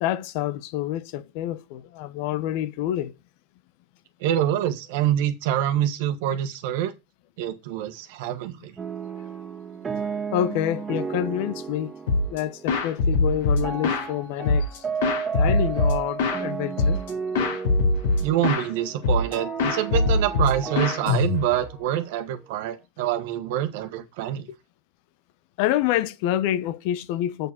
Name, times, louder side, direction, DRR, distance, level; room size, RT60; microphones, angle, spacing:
voice 1, 0.0-3.1 10.3-11.9 12.3-14.8 15.3-17.0 25.6-27.5, left 12 dB, 65° left, 0.9 m, -27 dB
voice 2, 4.2-6.9 7.4-8.7 18.2-24.5, right 11 dB, 70° right, 1.4 m, -26 dB
sound 1, 8.8-22.8, right 6 dB, 25° right, 2.1 m, -34 dB
sound 2, 12.1-12.4 12.7-14.1 14.4-16.4 16.8-17.1 17.3-18.7 19.0-19.3 19.6-21.7, left 3 dB, 80° left, 2.7 m, -22 dB
7.8 x 4.9 x 6.3 m
hypercardioid pair, 100°, 0 cm